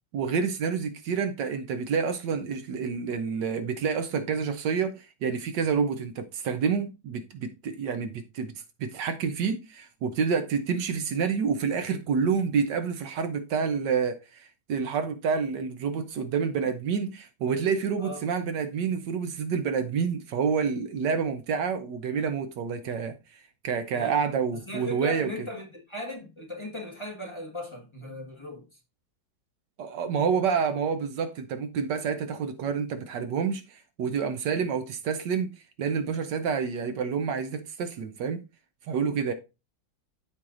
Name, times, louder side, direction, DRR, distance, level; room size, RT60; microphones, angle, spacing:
voice 1, 0.1-8.5 8.8-23.2 23.6-25.3 29.8-35.5 35.8-38.4 38.9-39.3, right 6 dB, 70° right, 1.3 m, -28 dB
voice 2, 24.7-28.8, left 1 dB, 15° left, 1.5 m, -37 dB
13.5 x 4.5 x 2.5 m
omnidirectional pair, 2.0 m